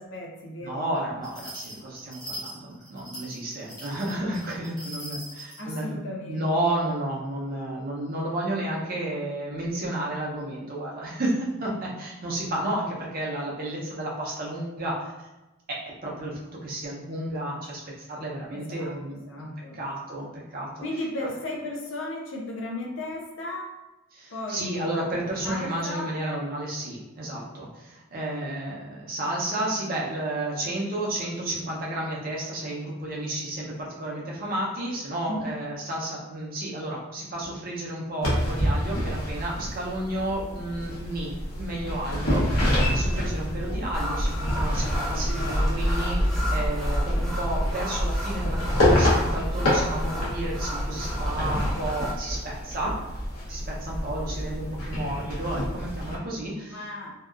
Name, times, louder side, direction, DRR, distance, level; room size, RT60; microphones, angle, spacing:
voice 1, 0.0-1.0 5.6-6.7 18.5-19.8 20.8-23.7 24.3-24.7 25.0-25.1 25.4-26.2 35.3-35.5 56.7-57.3, left 1 dB, 65° left, 0 dB, 0.5 m, -35 dB
voice 2, 0.6-6.0 6.3-15.3 15.7-17.8 18.1-19.5 19.7-20.8 24.1-52.9 53.5-56.8, right 1 dB, 40° right, -4 dB, 0.6 m, -32 dB
sound 1, 1.2-5.6, right 1 dB, 20° left, 0.7 m, -41 dB
sound 2, 38.2-56.2, left 1 dB, 80° left, 1.0 m, -28 dB
sound 3, 43.9-52.1, equal, ahead, 0.3 m, -28 dB
2.7 x 2.3 x 2.4 m, 1.0 s
head